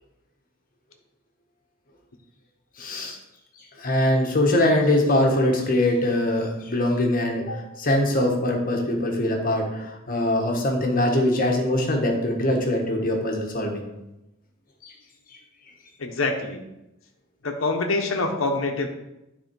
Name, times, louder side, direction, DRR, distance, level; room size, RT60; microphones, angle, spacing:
voice 1, 2.8-3.2 3.8-13.8 14.8-14.9, left 1 dB, 45° left, 2 dB, 1.4 m, -22 dB
voice 2, 16.0-16.6 17.4-18.9, left 3 dB, 80° left, 4 dB, 1.1 m, -25 dB
9.5 x 4.3 x 4.6 m, 0.93 s
head